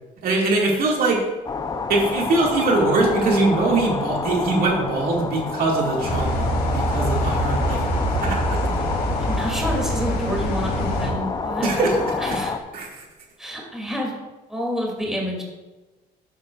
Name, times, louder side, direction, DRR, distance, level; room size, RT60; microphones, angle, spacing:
voice 1, 0.2-1.2 1.9-7.9 8.2-8.6 11.6-12.4 12.7-13.0, right 3 dB, 60° right, -2 dB, 2.4 m, -22 dB
sound 1, 1.5-12.6, left 4 dB, 25° left, 0.7 m, -28 dB
sound 2, 6.0-11.1, equal, 70° left, 2.8 m, -25 dB
voice 2, 9.2-11.7 12.2-12.5 13.4-14.2 14.5-15.4, equal, 5° right, -2 dB, 2.9 m, -28 dB
12.0 x 9.3 x 2.6 m, 1.2 s
cardioid pair, 110°, 17 cm